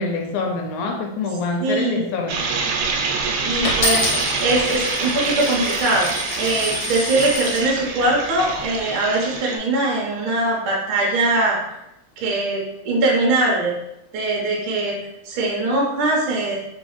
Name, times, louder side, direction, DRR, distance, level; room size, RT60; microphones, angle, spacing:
voice 1, 0.0-2.4, left 3 dB, 85° left, 3 dB, 2.0 m, -25 dB
voice 2, 1.6-2.1 3.4-4.1 4.4-6.1 6.4-11.6 12.2-13.7 14.1-14.9 15.2-16.6, right 2 dB, 70° right, -2 dB, 1.2 m, -21 dB
sound 1, 2.3-9.6, right 4 dB, 90° right, 2.1 m, -26 dB
Coin (dropping), 3.6-7.7 8.4-8.8, left 2 dB, 50° left, 1.6 m, -27 dB
4.3 x 3.2 x 3.0 m, 0.85 s
omnidirectional pair, 3.4 m